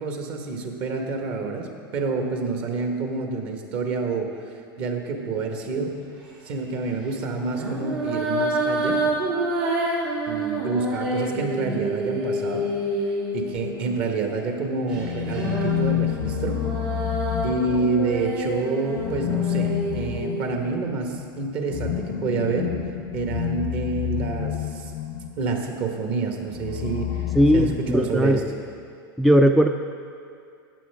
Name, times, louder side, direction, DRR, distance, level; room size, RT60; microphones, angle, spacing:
voice 1, 0.0-4.3 4.8-6.0 6.5-9.0 10.3-12.7 13.1-16.6 17.4-22.7 23.1-24.9 25.4-27.3 27.5-28.4, right 4 dB, 50° right, 3 dB, 1.5 m, -28 dB
sound 1, 5.7-6.0 7.4-14.0 14.9-20.5, right 1 dB, 80° right, 3.0 m, -28 dB
sound 2, 14.9-18.2 18.9-25.5 26.5-28.4, left 12 dB, 55° left, 0.5 m, -29 dB
voice 2, 27.4-28.4 29.2-29.7, equal, ahead, 6 dB, 0.3 m, -18 dB
14.0 x 9.2 x 3.6 m, 2.4 s
hypercardioid pair, 95°, 12 cm